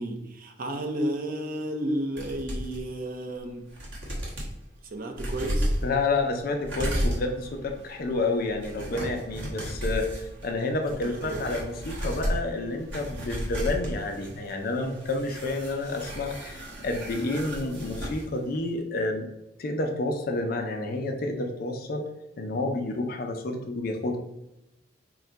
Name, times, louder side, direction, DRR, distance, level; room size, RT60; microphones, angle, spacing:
voice 1, 0.0-3.7 4.8-5.7 11.0-11.5, right 1 dB, 50° right, 4 dB, 0.6 m, -32 dB
sound 1, 2.2-2.8 3.3-3.4 3.7-4.5 5.1-18.3 18.5-18.6, equal, 90° right, 1.2 m, -34 dB
voice 2, 5.8-19.3 19.6-22.1 22.4-24.2, left 2 dB, 50° left, 4 dB, 0.5 m, -29 dB
3.8 x 2.1 x 4.4 m, 0.90 s
head